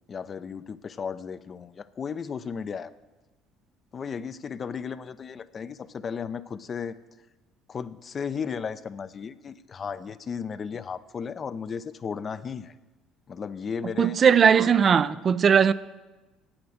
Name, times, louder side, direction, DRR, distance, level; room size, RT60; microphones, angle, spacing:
voice 1, 0.1-2.9 3.9-7.0 7.7-12.7 13.3-14.2, left 6 dB, 40° left, 0.6 m, -35 dB
voice 2, 14.0-15.7, right 7 dB, 45° right, 0.4 m, -19 dB
8.7 x 7.8 x 7.7 m
hypercardioid pair, 60°, 0 cm